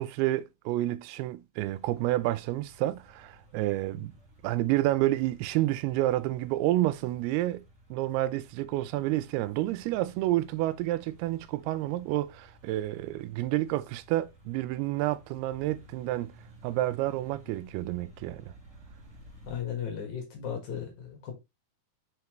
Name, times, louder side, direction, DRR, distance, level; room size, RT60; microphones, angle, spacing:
voice 1, 0.0-4.1 4.4-7.6 7.9-16.3 16.6-18.5, right 16 dB, 85° right, 2.6 m, -29 dB
sound 1, 1.5-19.6, equal, 25° right, 1.9 m, -55 dB
voice 2, 19.5-21.3, left 8 dB, 55° left, 2.6 m, -36 dB
5.9 x 5.8 x 3.0 m
omnidirectional pair, 4.5 m